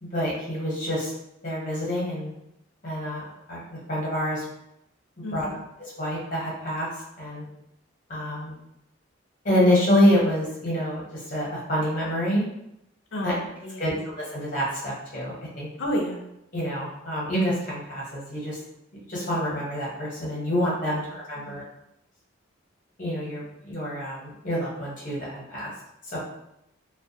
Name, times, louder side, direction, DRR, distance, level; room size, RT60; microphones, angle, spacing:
voice 1, 0.0-1.1 1.4-2.3 2.8-3.2 3.5-4.4 5.2-5.5 5.8-6.9 7.2-7.4 8.1-8.6 9.4-12.4 13.2-13.3 13.8-15.7 16.5-18.6 19.1-21.6 23.0-25.7 26.0-26.2, equal, 40° left, -6 dB, 0.9 m, -27 dB
voice 2, 5.2-5.6 13.1-14.0 15.8-16.2 21.4-21.7, equal, 70° left, 0 dB, 0.5 m, -31 dB
2.2 x 2.2 x 2.7 m, 0.82 s
head